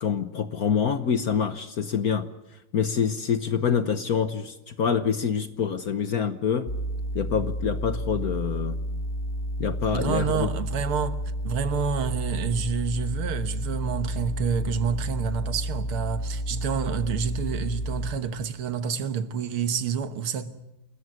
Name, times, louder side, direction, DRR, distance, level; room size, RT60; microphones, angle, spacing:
voice 1, 0.0-2.3 2.7-6.7 7.1-8.8 9.6-10.5, left 7 dB, 55° left, 1.2 m, -26 dB
sound 1, 6.7-18.1, equal, 35° left, 4.1 m, -31 dB
voice 2, 9.9-11.2 11.4-20.5, right 6 dB, 75° right, 2.1 m, -28 dB
28.5 x 14.0 x 9.6 m
omnidirectional pair, 2.4 m